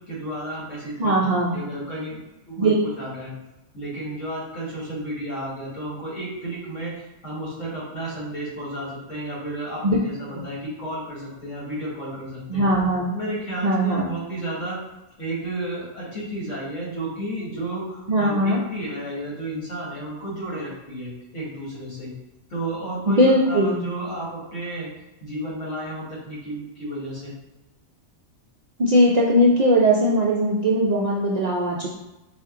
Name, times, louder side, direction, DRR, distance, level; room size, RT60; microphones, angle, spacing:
voice 1, 0.1-2.2 2.5-3.3 3.7-12.6 13.1-14.8 15.2-22.1 22.5-24.9 25.2-27.3, right 1 dB, 80° left, -6 dB, 1.9 m, -32 dB
voice 2, 1.0-1.6 2.6-2.7 9.8-10.0 12.5-13.1 13.6-14.1 18.1-18.6 23.1-23.8 28.8-31.9, equal, 55° right, -4 dB, 0.4 m, -19 dB
4.3 x 2.4 x 3.6 m, 1.0 s
omnidirectional pair, 1.3 m